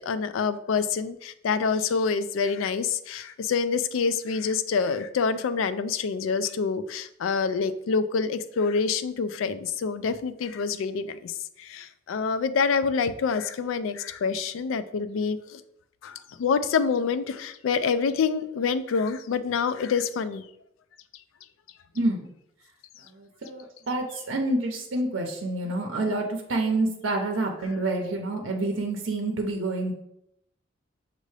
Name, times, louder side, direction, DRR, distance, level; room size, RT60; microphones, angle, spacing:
voice 1, 0.0-15.6 16.0-20.4, left 5 dB, 75° left, 13 dB, 0.3 m, -27 dB
voice 2, 21.9-22.3 23.0-29.9, right 2 dB, 70° right, 2 dB, 0.6 m, -28 dB
6.4 x 2.5 x 3.2 m, 0.77 s
head